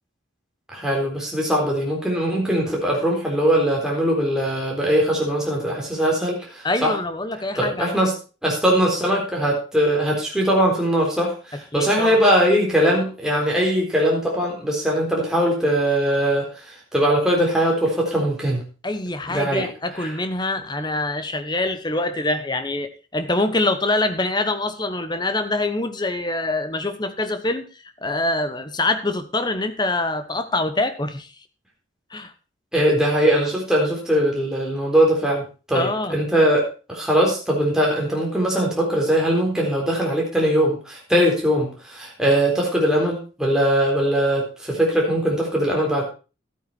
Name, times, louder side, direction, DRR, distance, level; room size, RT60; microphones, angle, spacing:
voice 1, 0.7-6.9 7.6-8.1 8.4-18.6 19.3-19.7 20.0-20.1 32.7-46.0, equal, 5° right, -3 dB, 3.9 m, -21 dB
voice 2, 6.6-8.0 11.7-12.2 18.8-27.6 28.0-31.3 32.1-32.3 35.7-36.2, left 2 dB, 20° left, 10 dB, 1.1 m, -25 dB
13.0 x 8.9 x 4.3 m, 0.33 s
head